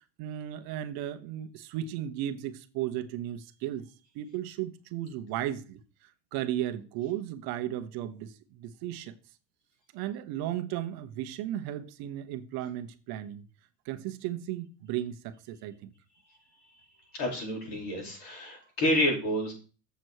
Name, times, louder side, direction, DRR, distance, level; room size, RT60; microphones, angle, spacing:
voice 1, 0.2-3.9 4.1-9.1 9.9-13.5 13.8-15.9, right 12 dB, 50° right, 0.9 m, -35 dB
voice 2, 17.1-19.5, left 1 dB, 60° left, 5.0 m, -29 dB
7.7 x 6.8 x 4.6 m
cardioid pair, 150°, 47 cm